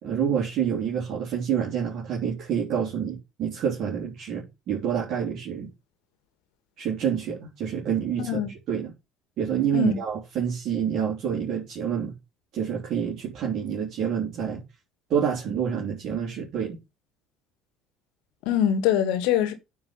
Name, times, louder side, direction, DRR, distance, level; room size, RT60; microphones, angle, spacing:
voice 1, 0.0-5.7 6.8-8.4 8.7-8.9 9.4-12.1 12.5-14.6 15.1-16.8, right 8 dB, 50° right, 3.4 m, -27 dB
voice 2, 8.2-8.5 9.7-10.0 18.4-19.5, left 10 dB, 60° left, 1.7 m, -23 dB
9.4 x 4.9 x 5.8 m
figure-of-eight pair, 60°, 0 cm